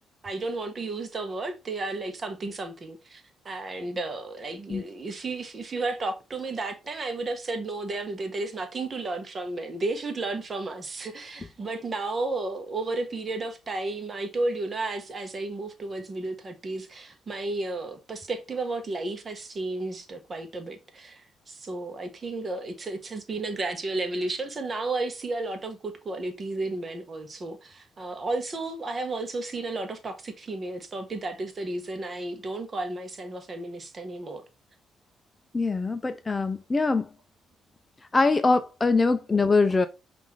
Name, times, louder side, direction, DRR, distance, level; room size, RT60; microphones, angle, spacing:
voice 1, 0.2-34.4, right 2 dB, 35° right, 0.9 m, -33 dB
voice 2, 35.5-37.1 38.1-39.9, left 3 dB, 25° left, 0.4 m, -23 dB
5.2 x 2.5 x 3.1 m
cardioid pair, 90°, 0 cm